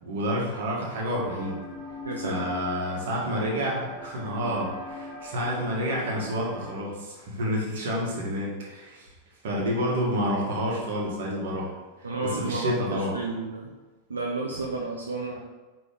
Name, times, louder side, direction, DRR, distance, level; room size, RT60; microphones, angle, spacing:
voice 1, 0.0-1.6 2.2-9.1 9.4-11.7 12.0-12.1 12.3-13.1, equal, 55° right, -3 dB, 1.3 m, -29 dB
sound 1, 1.1-6.8, left 3 dB, 20° left, 1.2 m, -40 dB
voice 2, 2.0-2.4 12.0-13.7 14.1-15.4, right 3 dB, 75° right, -1 dB, 0.4 m, -32 dB
5.1 x 3.0 x 3.3 m, 1.2 s
figure-of-eight pair, 90°, 0 cm